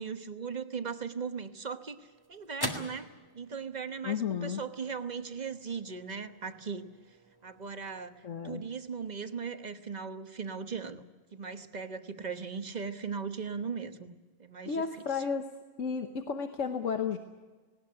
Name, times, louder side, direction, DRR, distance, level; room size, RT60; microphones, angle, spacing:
voice 1, 0.0-3.1 3.3-6.9 7.4-11.0 11.3-14.1 14.4-14.8 15.2-15.3, right 5 dB, 35° right, 9 dB, 1.1 m, -38 dB
sound 1, 1.3-9.9, equal, 15° left, 1.9 m, -46 dB
voice 2, 4.0-4.6 8.2-8.6 14.7-15.5 15.8-17.2, left 6 dB, 75° left, 6 dB, 1.4 m, -32 dB
19.0 x 18.5 x 9.5 m, 1.3 s
omnidirectional pair, 1.3 m